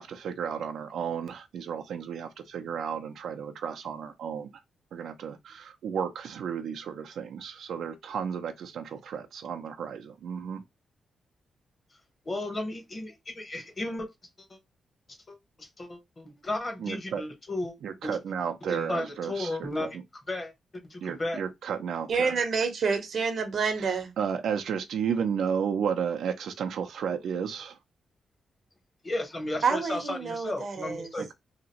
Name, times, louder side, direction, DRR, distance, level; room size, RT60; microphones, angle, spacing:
voice 1, 0.0-4.5 4.9-10.6 16.8-17.2 17.8-19.9 21.0-22.3 23.8-27.8, right 7 dB, 80° right, 0.4 m, -33 dB
voice 2, 12.3-14.0 14.5-14.6 15.3-15.4 15.8-15.9 16.2-17.7 18.0-18.2 18.7-20.0 20.3-20.5 20.9-21.4 29.0-31.3, left 2 dB, 30° left, 0.9 m, -34 dB
voice 3, 22.1-24.1 29.6-31.1, right 5 dB, 60° right, 0.8 m, -28 dB
2.8 x 2.5 x 2.9 m
cardioid pair, 105°, 0 cm